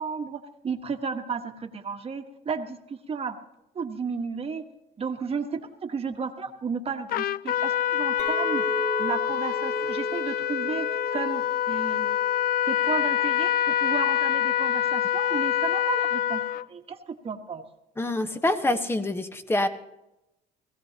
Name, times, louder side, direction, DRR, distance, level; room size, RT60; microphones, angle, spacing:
voice 1, 0.0-3.4 3.7-4.6 5.0-8.6 9.0-10.9 11.1-12.1 12.7-16.4 16.7-17.6, right 5 dB, 35° right, 5 dB, 1.4 m, -33 dB
Trumpet, 7.1-16.7, left 11 dB, 60° left, 0.4 m, -26 dB
Chink clink, 8.2-12.5 12.9-13.3, right 1 dB, 35° left, 5.5 m, -35 dB
voice 2, 18.0-19.7, left 1 dB, 15° left, 9 dB, 1.2 m, -26 dB
19.5 x 15.5 x 2.9 m, 0.91 s
cardioid pair, 110°, 17 cm